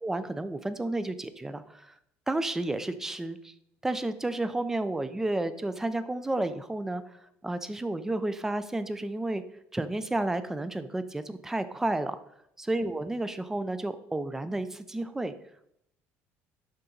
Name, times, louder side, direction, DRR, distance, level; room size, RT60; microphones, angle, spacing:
voice 1, 0.0-1.9 2.3-3.5 3.8-7.0 7.4-9.4 9.7-12.2 12.6-15.3, right 2 dB, 10° right, 12 dB, 0.4 m, -31 dB
11.5 x 4.0 x 3.8 m, 0.77 s
cardioid pair, 155°, 5 cm